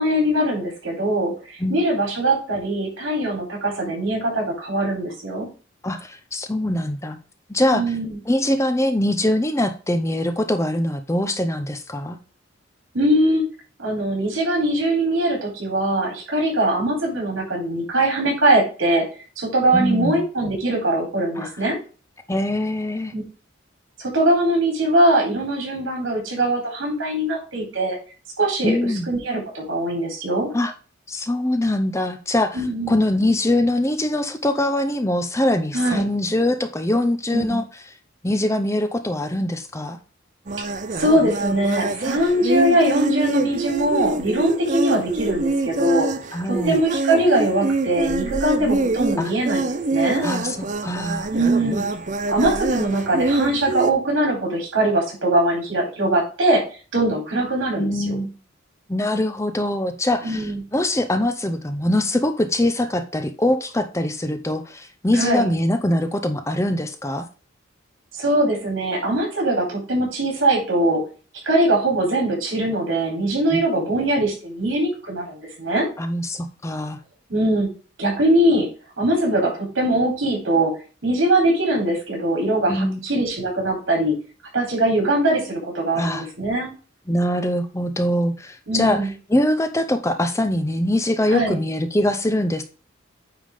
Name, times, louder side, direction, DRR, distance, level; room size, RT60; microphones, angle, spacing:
voice 1, 0.0-5.5 7.7-8.2 12.9-13.4 13.8-19.0 19.4-21.8 23.1-23.2 24.0-28.0 28.4-30.5 32.5-32.9 35.7-36.0 37.3-37.6 41.0-46.1 46.5-50.2 51.3-51.9 52.3-56.6 56.9-58.2 60.2-60.6 65.1-65.5 68.2-71.0 71.4-75.9 77.3-77.7 78.0-78.7 79.0-80.7 81.0-84.1 84.5-86.7 88.7-89.1 91.3-91.6, right 1 dB, 80° right, 0 dB, 4.3 m, -21 dB
voice 2, 5.8-7.2 7.5-7.9 8.3-12.2 19.7-20.2 21.4-21.5 22.3-23.1 28.6-29.0 30.5-30.7 31.1-37.6 38.2-40.0 46.3-46.8 49.2-49.3 50.2-51.3 57.8-58.3 58.9-67.3 73.5-73.6 76.0-77.0 82.7-83.0 86.0-86.3 87.1-89.0 89.3-92.6, left 1 dB, 15° left, 8 dB, 0.6 m, -23 dB
sound 1, 40.5-53.9, right 2 dB, 35° right, 0.5 m, -25 dB
9.0 x 3.6 x 5.0 m, 0.36 s
head